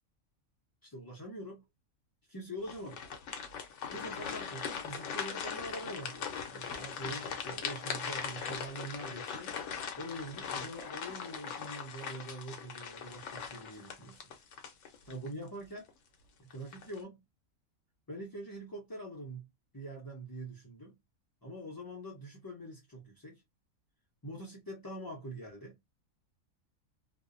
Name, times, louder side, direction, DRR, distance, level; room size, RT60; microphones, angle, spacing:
voice 1, 0.8-1.7 2.3-3.0 3.9-9.6 10.0-14.2 15.0-15.9 16.4-17.2 18.1-19.5 19.7-21.0 21.4-23.4 24.2-25.8, right 1 dB, 30° left, 0.4 m, -44 dB
sound 1, 2.6-15.3 15.8-15.9 16.5-17.0, left 6 dB, 65° left, 0.9 m, -40 dB
2.6 x 2.1 x 2.4 m
omnidirectional pair, 1.5 m